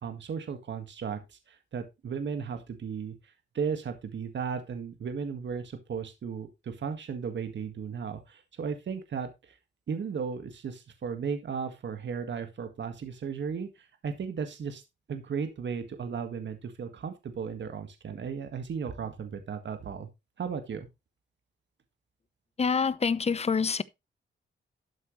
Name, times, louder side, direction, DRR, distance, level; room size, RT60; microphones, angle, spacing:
voice 1, 0.0-9.6 9.9-14.8 15.1-20.1 20.4-20.9, right 6 dB, 70° right, 1.8 m, -35 dB
voice 2, 22.6-23.8, left 5 dB, 35° left, 0.7 m, -26 dB
12.5 x 8.1 x 3.2 m
wide cardioid pair, 115°, 20 cm